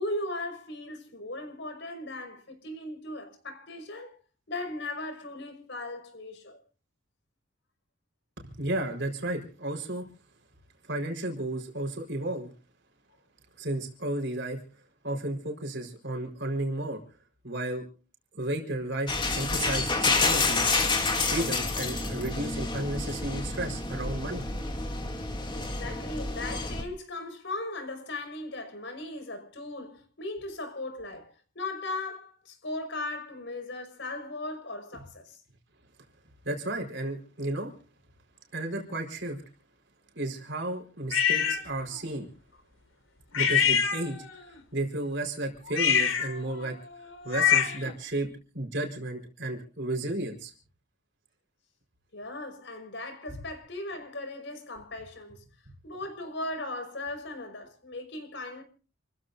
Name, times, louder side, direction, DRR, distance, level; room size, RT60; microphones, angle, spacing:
voice 1, 0.0-4.1 4.5-6.6 25.5-35.4 52.1-55.4 55.8-58.6, left 2 dB, 60° left, 5.7 m, -38 dB
voice 2, 8.4-10.1 10.8-12.5 13.6-14.6 15.0-17.0 17.4-17.8 18.3-20.6 21.3-24.5 36.4-37.7 38.5-39.4 40.1-42.3 43.3-44.2 44.5-46.8 47.2-48.3 48.5-50.5, right 1 dB, 60° right, 4.6 m, -33 dB
sound 1, 19.1-26.8, left 3 dB, 25° left, 2.6 m, -29 dB
sound 2, 41.1-41.6 43.3-44.4 45.7-47.9, left 8 dB, 85° left, 3.5 m, -25 dB
29.5 x 15.0 x 2.7 m
head